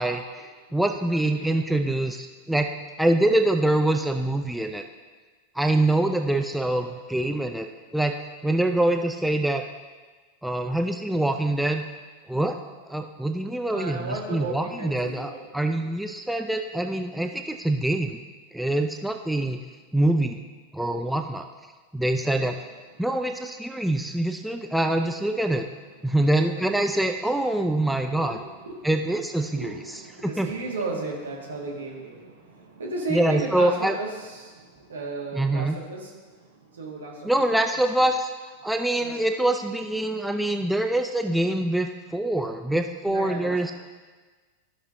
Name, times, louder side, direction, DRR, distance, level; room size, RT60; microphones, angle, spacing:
voice 1, 0.0-2.7 3.0-4.8 5.6-8.1 8.4-9.6 10.4-11.8 12.3-12.6 12.9-18.2 18.5-19.6 19.9-20.4 20.7-21.4 21.9-22.5 23.0-25.7 26.0-28.4 28.8-29.7 30.2-30.5 33.1-34.0 35.3-35.8 37.2-38.3 38.6-43.7, right 1 dB, ahead, 5 dB, 0.4 m, -25 dB
voice 2, 1.1-1.5 6.6-6.9 13.7-15.5 22.5-22.7 22.9-23.1 25.4-25.5 26.0-26.2 28.1-28.9 29.4-37.6 39.0-39.2 43.0-43.7, right 3 dB, 70° right, -2 dB, 1.7 m, -35 dB
14.5 x 6.1 x 2.6 m, 1.4 s
figure-of-eight pair, 90°, 0 cm